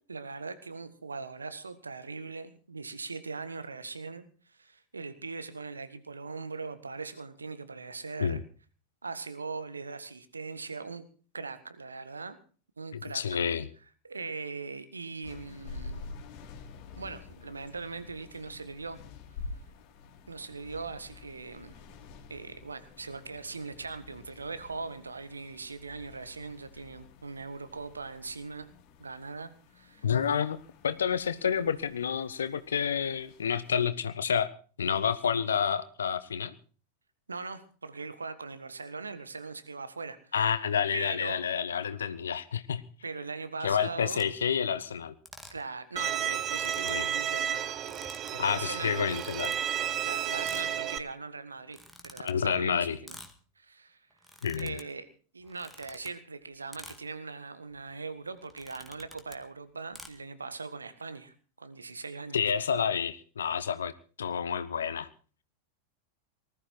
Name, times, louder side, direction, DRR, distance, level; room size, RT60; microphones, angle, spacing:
voice 1, 0.0-8.4 9.0-11.0 11.3-12.4 12.8-13.4 14.0-16.1 16.9-19.0 20.3-21.8 22.3-28.7 29.0-30.1 37.3-40.3 40.9-41.4 43.0-44.3 45.5-47.7 48.3-49.1 50.0-51.8 52.0-53.2 53.6-54.0 54.6-62.4, right 4 dB, 75° right, 11 dB, 1.6 m, -40 dB
voice 2, 12.9-13.7 30.0-30.6 30.8-34.5 34.8-36.5 40.3-42.8 43.6-45.1 46.8-47.1 48.4-49.5 52.2-53.0 54.4-54.8 62.3-63.9 64.2-65.1, left 7 dB, 70° left, 15 dB, 0.8 m, -29 dB
sound 1, 15.2-33.9, left 4 dB, 40° left, 3.2 m, -49 dB
sound 2, 44.1-44.2 45.2-45.7 46.0-46.1 46.3-47.0 47.6-48.3 49.0-49.5 50.4-50.7 51.6-52.3 53.1-53.4 54.1-54.8 55.4-56.1 56.7-57.0 57.7-57.9 58.4-59.4 59.9-60.1, equal, ahead, 1.9 m, -49 dB
Bowed string instrument, 46.0-51.0, right 9 dB, 30° right, 1.0 m, -32 dB
19.5 x 13.0 x 4.6 m, 0.40 s
figure-of-eight pair, 90°, 0 cm